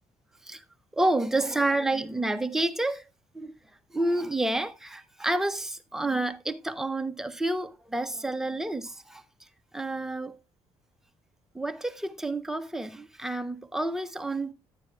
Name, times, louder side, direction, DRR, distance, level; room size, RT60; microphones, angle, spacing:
voice 1, 0.9-3.0 3.3-3.6 3.9-9.2 9.7-10.4 11.5-14.5, right 2 dB, 5° right, 0.5 m, -29 dB
11.5 x 9.6 x 2.3 m
cardioid pair, 175°, 11 cm